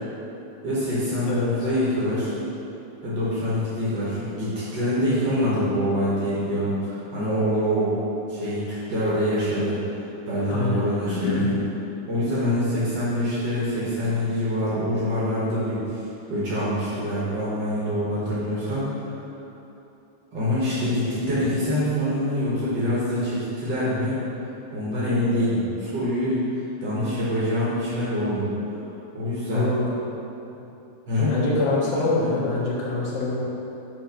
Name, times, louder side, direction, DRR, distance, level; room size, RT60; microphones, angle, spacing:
voice 1, 0.6-2.3 3.0-8.0 8.3-9.8 10.3-11.5 12.1-16.0 16.3-18.9 20.3-24.2 24.7-26.4 26.8-28.5 29.1-29.7 31.1-31.3, equal, 85° right, -9 dB, 0.9 m, -25 dB
voice 2, 10.5-10.8 11.1-11.5 29.5-29.9 31.3-33.4, left 3 dB, 70° left, -6 dB, 3.0 m, -25 dB
9.0 x 3.4 x 5.8 m, 2.9 s
omnidirectional pair, 4.3 m